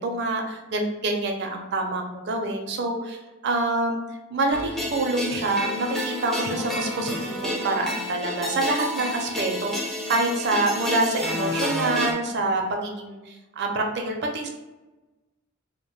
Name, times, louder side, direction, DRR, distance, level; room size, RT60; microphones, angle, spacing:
voice 1, 0.0-4.0 4.3-14.5, right 2 dB, 55° right, 2 dB, 0.5 m, -26 dB
sound 1, 4.5-12.1, left 1 dB, ahead, 0.3 m, -30 dB
2.5 x 2.1 x 3.1 m, 1.1 s
head